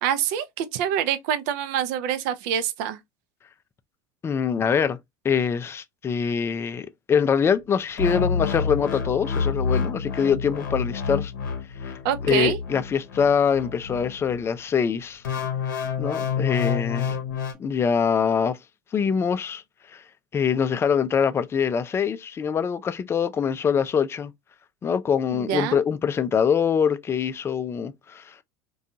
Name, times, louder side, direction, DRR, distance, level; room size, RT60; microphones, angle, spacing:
voice 1, 0.0-3.0 12.0-12.6 25.3-25.8, right 9 dB, 65° right, 0.5 m, -26 dB
voice 2, 4.2-5.0 5.2-11.3 11.8-11.9 12.2-15.2 16.0-17.2 17.6-18.6 18.9-19.6 19.9-20.0 20.3-24.3 24.8-28.4, left 7 dB, 25° left, 0.4 m, -24 dB
sound 1, 8.0-14.5 15.2-17.5, left 6 dB, 75° left, 0.7 m, -28 dB
2.6 x 2.3 x 2.6 m
hypercardioid pair, 80°, 10 cm